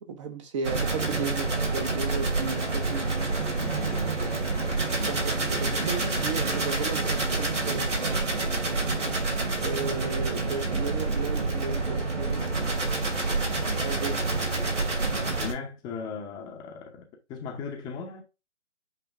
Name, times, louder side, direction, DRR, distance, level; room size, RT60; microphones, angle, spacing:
voice 1, 0.0-3.3 4.2-4.3 5.0-8.5 9.6-12.5 13.8-14.3, right 5 dB, 25° right, 0.7 m, -35 dB
sound 1, 0.6-15.5, right 3 dB, 85° right, 2.5 m, -28 dB
voice 2, 3.6-4.2 9.5-9.7 15.4-18.2, left 5 dB, 10° left, 0.7 m, -38 dB
8.0 x 3.0 x 4.6 m
figure-of-eight pair, 140°, 36 cm